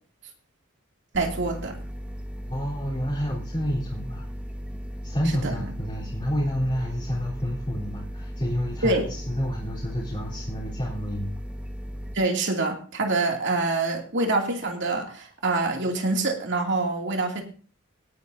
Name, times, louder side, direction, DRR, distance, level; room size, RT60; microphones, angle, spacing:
sound 1, 1.1-12.2, equal, 5° right, 1.4 m, -36 dB
voice 1, 1.1-1.8 5.4-5.7 8.8-9.1 12.1-17.4, right 3 dB, 60° right, 2 dB, 2.5 m, -25 dB
voice 2, 2.5-4.3 5.0-11.3, equal, 25° left, -6 dB, 3.7 m, -29 dB
18.5 x 10.5 x 2.7 m, 0.40 s
head